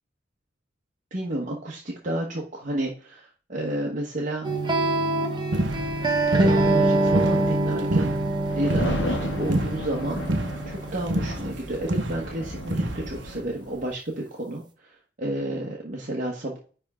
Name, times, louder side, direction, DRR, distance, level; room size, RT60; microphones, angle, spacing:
voice 1, 1.1-4.5 5.2-5.3 6.3-8.1 8.6-16.6, right 1 dB, 45° right, -2 dB, 1.2 m, -31 dB
sound 1, 4.4-11.5, right 2 dB, 25° right, 1.0 m, -25 dB
sound 2, 5.5-13.4, right 1 dB, 80° right, 1.1 m, -29 dB
sound 3, 8.4-13.9, left 1 dB, 70° left, 1.3 m, -34 dB
10.5 x 3.6 x 3.6 m, 0.39 s
head